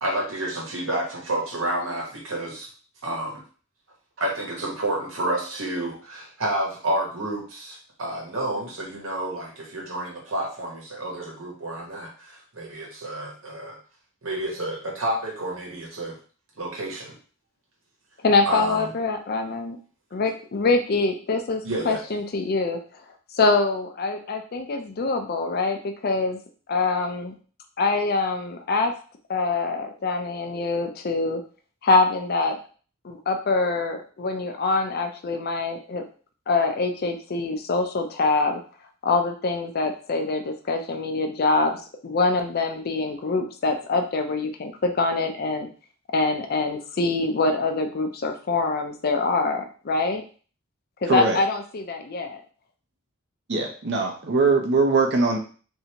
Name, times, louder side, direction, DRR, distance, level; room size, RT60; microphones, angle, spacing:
voice 1, 0.0-2.7 3.0-3.4 4.2-13.8 14.2-16.2 16.6-17.2 18.5-18.9 21.6-22.0, right 1 dB, 85° right, -2 dB, 1.2 m, -30 dB
voice 2, 18.2-19.8 20.1-22.8 23.3-26.4 26.7-27.3 27.8-28.9 29.3-31.4 31.8-32.6 33.0-36.0 36.5-38.6 39.0-45.7 46.1-50.2 51.0-52.4, left 3 dB, 50° left, 6 dB, 0.5 m, -24 dB
voice 3, 51.1-51.4 53.5-55.4, right 3 dB, 60° right, 2 dB, 0.7 m, -21 dB
3.2 x 2.7 x 2.9 m, 0.40 s
head